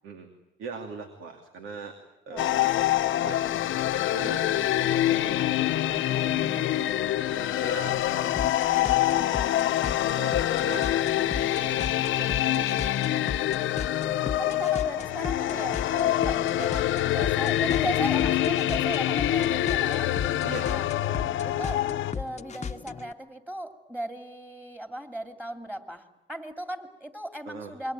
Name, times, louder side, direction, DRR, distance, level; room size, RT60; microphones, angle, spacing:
voice 1, 0.6-1.9 2.3-2.7 3.1-3.4 3.9-8.0 8.7-10.9 11.2-11.9 12.1-13.0 14.2-14.8 20.4-20.7 27.5-27.7, right 4 dB, 85° right, 5 dB, 2.7 m, -41 dB
voice 2, 2.3-2.6 13.8-20.2 20.6-20.9 21.4-21.9 22.1-27.9, right 1 dB, 10° right, 7 dB, 2.9 m, -37 dB
sound 1, 2.4-22.1, left 13 dB, 80° left, 1.0 m, -26 dB
sound 2, 3.5-23.1, left 6 dB, 35° left, 1.0 m, -38 dB
28.0 x 23.0 x 9.2 m, 0.93 s
cardioid pair, 90°, 20 cm